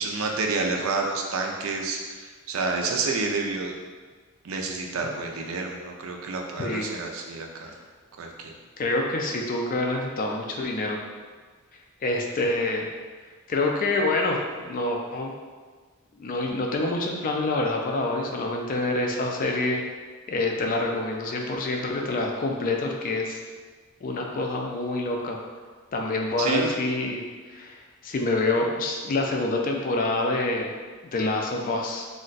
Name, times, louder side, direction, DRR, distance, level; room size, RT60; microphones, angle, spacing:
voice 1, 0.0-3.7 4.4-7.7 8.2-8.5 26.4-26.7, right 3 dB, 75° right, 1 dB, 0.4 m, -29 dB
voice 2, 6.6-6.9 8.8-11.0 12.0-12.9 13.5-15.3 16.2-19.8 20.3-23.4 24.0-25.4 25.9-27.2 27.5-27.8 28.0-30.7 31.1-32.1, left 2 dB, 40° left, 1 dB, 0.3 m, -26 dB
2.4 x 2.1 x 3.9 m, 1.5 s
head